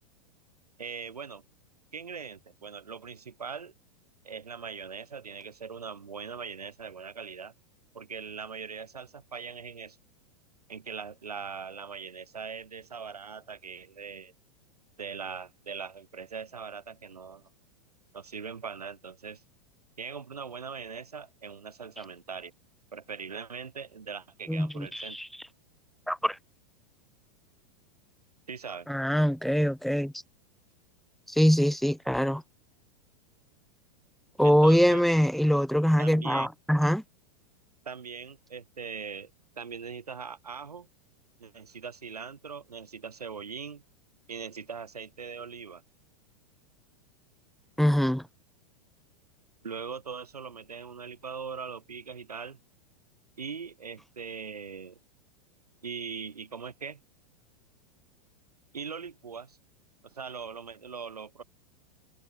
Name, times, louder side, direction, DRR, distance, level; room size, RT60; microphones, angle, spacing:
voice 1, 0.8-1.4 1.9-3.7 4.2-7.5 7.9-10.0 10.7-14.3 15.0-17.5 18.1-19.4 20.0-22.5 22.9-25.2 28.5-28.9 34.4-35.0 36.0-36.5 37.8-39.3 39.6-40.9 41.4-43.8 44.3-45.8 49.6-52.6 53.4-55.0 55.8-57.0 58.7-59.6 60.0-61.4, right 6 dB, 85° right, 6.7 m, -41 dB
voice 2, 24.5-25.3 26.1-26.4 28.9-30.1 31.3-32.4 34.4-37.0 47.8-48.2, equal, ahead, 1.2 m, -23 dB
hypercardioid pair, 100°, 19 cm